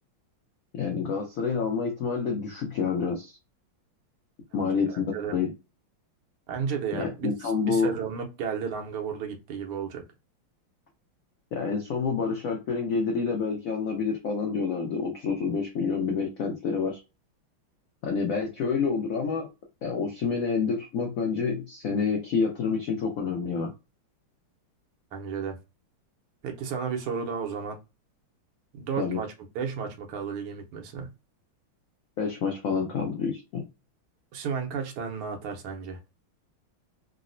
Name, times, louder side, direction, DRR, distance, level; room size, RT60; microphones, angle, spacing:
voice 1, 0.7-3.4 4.5-5.5 7.0-7.9 11.5-17.0 18.0-19.5 19.8-23.7 29.0-29.2 32.2-33.6, left 5 dB, 90° left, 0.7 m, -28 dB
voice 2, 4.9-5.4 6.5-7.3 7.7-10.0 25.1-25.6 26.4-27.8 28.7-31.1 34.3-36.0, right 6 dB, 90° right, 1.7 m, -33 dB
3.9 x 2.0 x 2.5 m
omnidirectional pair, 2.3 m